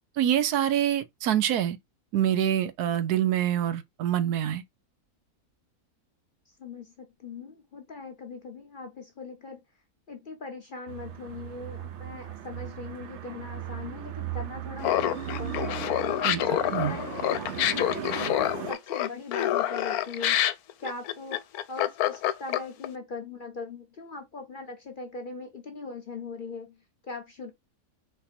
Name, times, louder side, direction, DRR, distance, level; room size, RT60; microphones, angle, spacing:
voice 1, 0.2-1.8 2.1-4.6 16.2-16.4 16.7-17.0, right 10 dB, 90° right, 1.2 m, -25 dB
voice 2, 6.6-9.6 10.1-15.6 16.2-20.5 20.8-21.4 21.7-27.5, left 4 dB, 45° left, 0.7 m, -40 dB
sound 1, 10.9-18.7, right 9 dB, 55° right, 0.9 m, -37 dB
Laughter, 14.8-22.9, left 12 dB, 80° left, 1.1 m, -27 dB
4.4 x 2.7 x 4.1 m
omnidirectional pair, 1.6 m